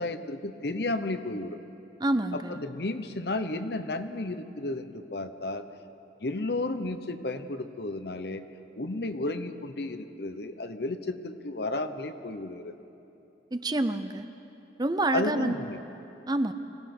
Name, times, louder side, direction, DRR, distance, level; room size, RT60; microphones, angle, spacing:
voice 1, 0.0-1.6 2.5-5.6 6.2-8.4 8.8-12.7 15.1-15.8, left 2 dB, 60° left, 9 dB, 0.9 m, -33 dB
voice 2, 2.0-2.6 13.5-14.2 14.8-15.5 16.3-16.5, right 2 dB, 20° right, 10 dB, 0.6 m, -27 dB
26.0 x 18.0 x 6.1 m, 2.9 s
head